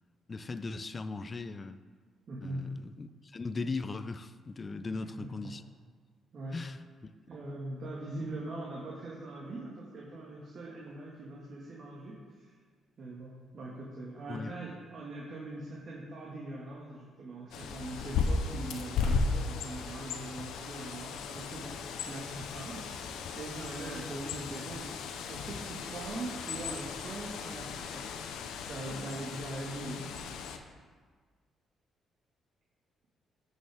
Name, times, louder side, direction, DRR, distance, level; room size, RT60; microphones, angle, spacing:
voice 1, 0.3-1.8 2.4-5.6 6.5-6.8 14.3-14.5, left 3 dB, 35° left, 0.5 m, -38 dB
voice 2, 2.3-2.8 4.9-5.6 6.3-6.7 7.3-12.5 13.0-22.9 23.3-28.3 28.7-30.3, right 2 dB, 50° right, 1.8 m, -42 dB
Bird, 17.5-30.6, left 5 dB, 85° left, 0.7 m, -36 dB
13.5 x 6.4 x 3.5 m
cardioid pair, 90°, 0 cm